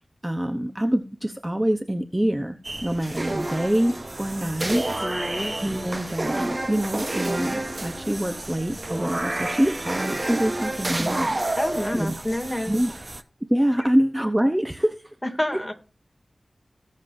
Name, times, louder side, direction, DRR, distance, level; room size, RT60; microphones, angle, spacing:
voice 1, 0.2-5.1 5.6-11.4 11.9-12.1 12.7-13.0 13.5-15.1, equal, 15° right, 8 dB, 0.9 m, -25 dB
sound 1, 2.6-13.2, right 2 dB, 40° right, 1.0 m, -30 dB
voice 2, 5.0-5.5 11.6-12.7 15.4-15.7, left 1 dB, 10° left, 4 dB, 2.5 m, -28 dB
19.0 x 7.5 x 2.7 m, 0.35 s
wide cardioid pair, 50°, 0 cm